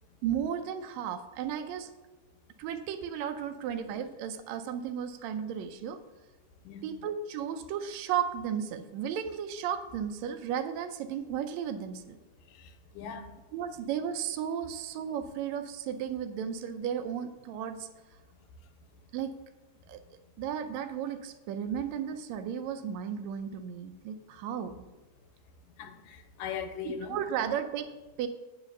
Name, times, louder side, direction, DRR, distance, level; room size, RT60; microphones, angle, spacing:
voice 1, 0.2-1.9 2.6-6.0 6.8-12.2 13.5-17.9 19.1-19.3 19.9-20.0 20.4-24.7 26.8-28.3, right 8 dB, 85° right, 8 dB, 1.6 m, -34 dB
voice 2, 12.5-13.2 25.8-27.2, left 7 dB, 85° left, 7 dB, 2.3 m, -39 dB
8.2 x 4.9 x 6.5 m, 1.1 s
omnidirectional pair, 3.8 m